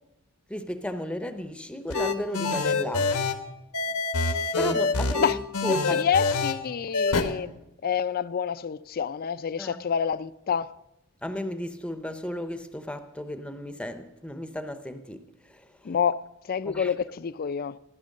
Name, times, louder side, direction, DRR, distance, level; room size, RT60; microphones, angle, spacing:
voice 1, 0.5-3.1 4.6-6.1 7.1-7.2 9.6-9.8 11.2-15.7 16.7-16.9, left 1 dB, 5° left, 0.7 m, -34 dB
sound 1, 1.9-3.3 3.7-6.5 6.9-7.2, left 4 dB, 90° left, 1.3 m, -25 dB
voice 2, 5.9-7.6 7.8-10.8 15.8-17.8, left 7 dB, 40° left, 0.4 m, -28 dB
15.5 x 10.5 x 6.5 m
head